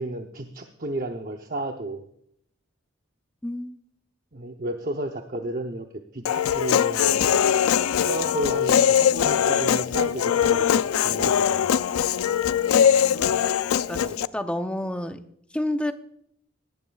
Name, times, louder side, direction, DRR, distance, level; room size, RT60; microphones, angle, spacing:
voice 1, 0.0-2.0 4.3-5.9 6.1-7.3 8.0-11.7 13.9-14.2, right 1 dB, 40° right, 4 dB, 0.7 m, -32 dB
voice 2, 3.4-3.8 13.0-13.2 13.6-15.2 15.5-15.9, left 1 dB, 5° left, 8 dB, 0.5 m, -30 dB
Human voice, 6.3-14.3, left 9 dB, 85° left, 0.4 m, -21 dB
17.5 x 12.0 x 2.3 m, 0.70 s
head